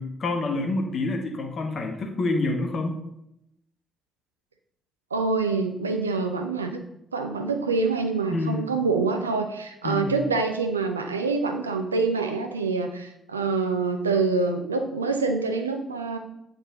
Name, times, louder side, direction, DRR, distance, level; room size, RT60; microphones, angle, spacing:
voice 1, 0.0-3.0 8.3-8.7 9.8-10.2, left 2 dB, 45° left, 4 dB, 1.5 m, -27 dB
voice 2, 5.1-6.8 7.1-16.2, right 4 dB, 85° right, 6 dB, 0.6 m, -26 dB
8.9 x 5.9 x 4.0 m, 0.81 s
figure-of-eight pair, 45°, 0 cm